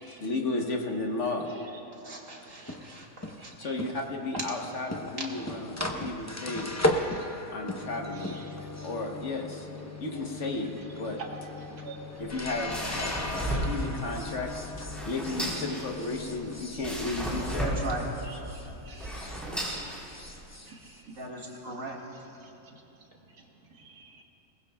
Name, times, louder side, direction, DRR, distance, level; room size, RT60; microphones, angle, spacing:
voice 1, 0.0-1.5 3.6-6.7 7.5-8.4 8.8-9.7 10.0-11.2 12.2-14.5 14.8-17.7, left 2 dB, 50° left, 2 dB, 1.3 m, -33 dB
voice 2, 2.0-3.5 17.6-18.1 21.2-22.0, right 2 dB, 55° right, -2 dB, 2.2 m, -39 dB
sound 1, 2.5-18.7 19.0-21.6, left 1 dB, 20° left, 0.4 m, -37 dB
voice 3, 8.2-8.6 11.8-12.0 12.4-12.5 13.5-13.6 18.2-19.1 20.7-21.0 22.4-22.8 23.7-24.2, right 4 dB, 70° right, 0 dB, 1.9 m, -50 dB
sound 2, 12.1-20.5, right 1 dB, ahead, 3.7 m, -35 dB
22.0 x 19.5 x 2.3 m, 3.0 s
omnidirectional pair, 1.7 m